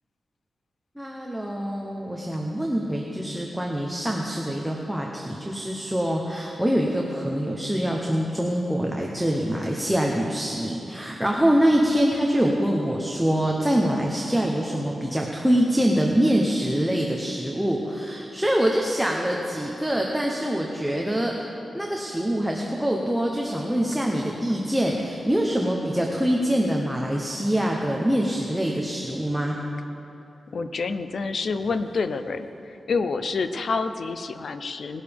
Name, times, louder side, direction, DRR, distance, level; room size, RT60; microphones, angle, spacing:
voice 1, 1.0-21.3 21.7-29.6, equal, 5° right, -1 dB, 0.8 m, -24 dB
voice 2, 30.5-35.0, left 4 dB, 55° left, 10 dB, 0.5 m, -28 dB
19.5 x 11.5 x 3.5 m, 2.9 s
wide cardioid pair, 180°, 0 cm